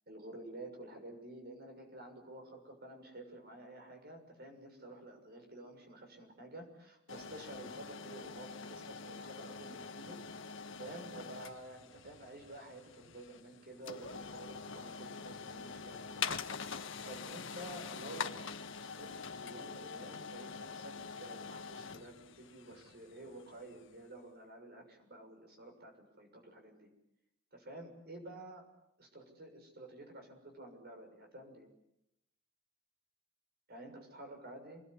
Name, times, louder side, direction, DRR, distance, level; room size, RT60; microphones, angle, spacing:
voice 1, 0.1-10.2 10.8-16.4 16.7-19.1 19.4-26.9 27.5-28.6 29.0-31.7 33.7-34.8, right 1 dB, 50° right, 4 dB, 6.6 m, -51 dB
sound 1, 7.1-23.9, left 5 dB, 65° left, 1.6 m, -45 dB
28.0 x 21.0 x 9.9 m, 0.83 s
head